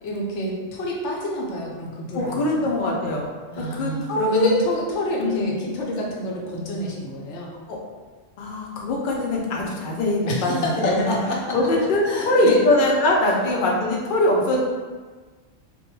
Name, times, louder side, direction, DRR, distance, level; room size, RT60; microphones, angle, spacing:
voice 1, 0.0-2.6 3.5-7.5 10.3-11.6 12.0-12.6, equal, 85° left, -2 dB, 0.9 m, -28 dB
voice 2, 2.1-3.3 3.6-4.6 5.2-5.5 7.7-7.8 8.4-11.2 11.5-14.6, left 1 dB, 60° left, -2 dB, 0.6 m, -22 dB
2.2 x 2.1 x 3.0 m, 1.4 s
omnidirectional pair, 1.2 m